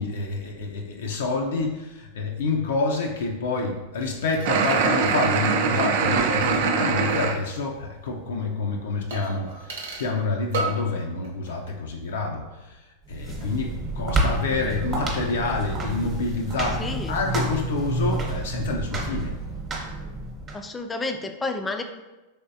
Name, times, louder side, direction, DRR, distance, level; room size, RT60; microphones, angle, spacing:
voice 1, 0.0-19.4, left 3 dB, 85° left, 1 dB, 0.4 m, -28 dB
sound 1, 3.9-7.3 7.6-7.7 9.1-10.2 10.5-11.0 11.2-11.8 12.1-12.2, right 3 dB, 85° right, 0.8 m, -37 dB
sound 2, 4.4-7.4, right 5 dB, 65° right, 0.4 m, -22 dB
sound 3, 13.1-20.5, right 2 dB, 25° right, 0.9 m, -29 dB
voice 2, 16.8-17.1 20.5-21.8, left 3 dB, 15° left, 5 dB, 0.3 m, -30 dB
3.4 x 3.1 x 2.7 m, 1.1 s
hypercardioid pair, 120°, 0 cm